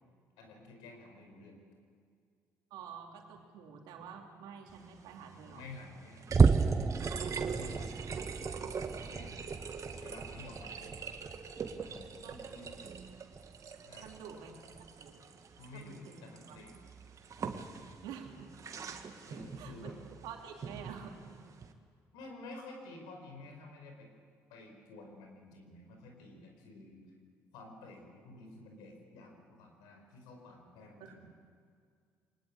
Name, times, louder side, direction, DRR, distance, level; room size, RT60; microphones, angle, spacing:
voice 1, 0.4-1.6 5.5-6.9 7.2-7.9 8.3-9.4 9.9-10.9 11.8-12.7 13.9-14.1 15.6-16.7 19.3-19.9 22.1-24.1 24.5-27.1 27.5-31.3, left 2 dB, 80° left, 3 dB, 5.0 m, -51 dB
voice 2, 2.7-5.6 12.2-12.5 14.0-14.5 14.8-15.2 15.7-16.6 18.0-18.5 19.6-21.2 31.0-31.3, right 7 dB, 80° right, 2 dB, 3.2 m, -49 dB
sound 1, 4.7-21.7, right 6 dB, 50° right, 1.9 m, -45 dB
sound 2, 6.3-13.0 13.3-13.6 14.0-14.2 14.7-14.9, right 5 dB, 30° right, 0.8 m, -32 dB
23.5 x 20.0 x 8.7 m, 2.2 s
supercardioid pair, 65°, 7 cm